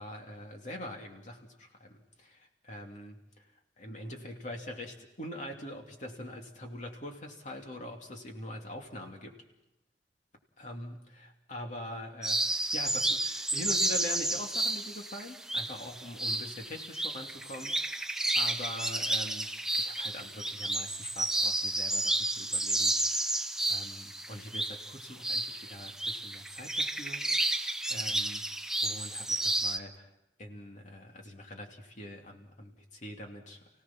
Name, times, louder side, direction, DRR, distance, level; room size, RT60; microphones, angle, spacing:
voice 1, 0.0-3.2 3.8-9.4 10.6-18.1 18.3-19.5 19.8-28.4 28.8-30.1 30.4-33.6, left 1 dB, 45° left, 2 dB, 2.8 m, -43 dB
sound 1, 12.2-29.8, right 1 dB, 5° right, 0.7 m, -31 dB
29.5 x 17.0 x 6.0 m, 0.91 s
head